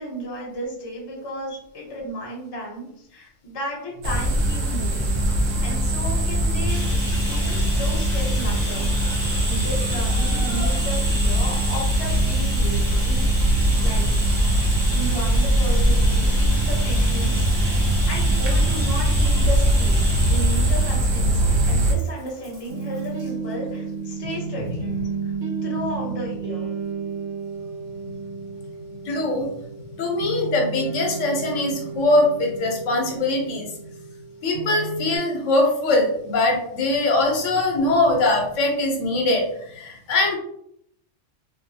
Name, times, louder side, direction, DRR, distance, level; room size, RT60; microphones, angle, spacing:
voice 1, 0.0-5.2 5.6-6.9 7.3-8.9 9.1-13.3 13.7-17.8 18.1-24.9 25.2-25.3 25.6-26.7, equal, 25° left, -2 dB, 0.7 m, -34 dB
sound 1, 4.0-21.9, right 1 dB, 90° right, 1.0 m, -21 dB
Bathtub (filling or washing), 6.7-23.3 24.2-24.4 24.7-24.8, left 1 dB, 15° right, 1.0 m, -35 dB
sound 2, 22.7-35.2, right 5 dB, 70° right, 1.2 m, -32 dB
voice 2, 29.0-29.5 30.0-33.7 34.4-40.4, left 2 dB, 80° left, 1 dB, 1.0 m, -22 dB
2.6 x 2.3 x 2.7 m, 0.72 s
omnidirectional pair, 1.3 m